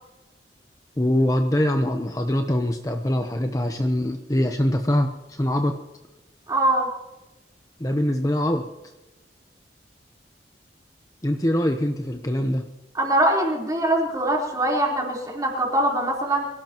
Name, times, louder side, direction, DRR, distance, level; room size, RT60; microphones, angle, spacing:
voice 1, 1.0-5.8 7.8-8.6 11.2-12.7, left 1 dB, 20° left, 5 dB, 0.9 m, -23 dB
voice 2, 6.5-6.9 12.9-16.5, right 1 dB, 20° right, -2 dB, 4.1 m, -22 dB
24.5 x 17.0 x 3.1 m, 1.0 s
head